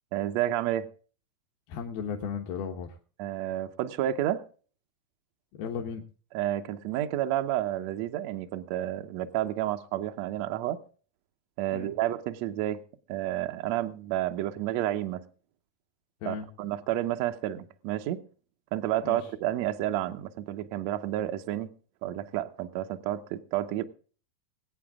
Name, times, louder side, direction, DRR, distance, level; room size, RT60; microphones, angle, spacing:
voice 1, 0.1-0.9 3.2-4.4 6.3-10.8 11.6-12.8 13.1-15.2 16.2-18.2 18.7-21.7 22.0-23.8, right 13 dB, 85° right, 1.5 m, -30 dB
voice 2, 1.7-3.0 5.6-6.0 11.7-11.9 16.2-16.5 19.0-19.2, left 6 dB, 80° left, 3.1 m, -35 dB
22.5 x 8.7 x 3.6 m
omnidirectional pair, 4.3 m